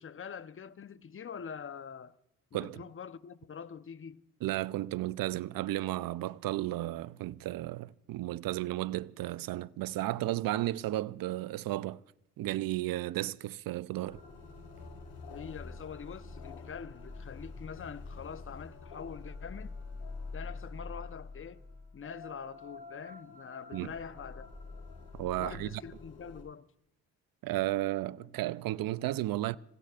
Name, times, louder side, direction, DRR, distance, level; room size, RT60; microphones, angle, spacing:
voice 1, 0.0-2.1 2.5-4.2 15.3-19.8 20.3-21.6 21.9-24.5 25.4-26.7, left 7 dB, 30° left, 0.9 m, -44 dB
voice 2, 4.4-12.0 12.4-14.2 23.7-23.9 25.1-25.8 27.4-29.6, right 15 dB, 55° right, 0.6 m, -33 dB
sound 1, 14.1-26.4, left 3 dB, 70° left, 5.4 m, -46 dB
28.5 x 16.5 x 2.5 m
hypercardioid pair, 55°, 41 cm